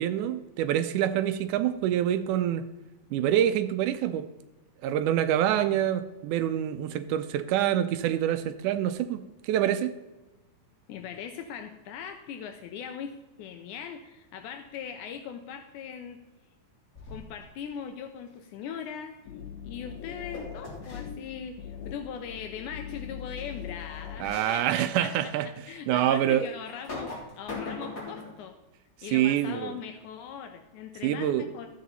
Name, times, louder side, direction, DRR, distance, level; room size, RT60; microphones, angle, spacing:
voice 1, 0.0-2.7 3.1-4.3 4.8-9.9 24.2-25.5 25.9-26.5 29.1-29.7 31.0-31.4, right 11 dB, 80° right, 11 dB, 2.0 m, -26 dB
voice 2, 10.9-16.2 17.1-19.2 19.6-28.6 29.0-31.7, left 7 dB, 80° left, 6 dB, 2.1 m, -40 dB
sound 1, 17.0-17.4 20.3-21.0 22.9-23.0 23.4-23.5 24.2-24.7 25.2-25.3 26.6-28.4, left 3 dB, 25° left, 3.2 m, -39 dB
sound 2, 19.2-24.4, left 8 dB, 65° left, 2.1 m, -41 dB
13.0 x 8.5 x 4.1 m, 1.1 s
omnidirectional pair, 3.7 m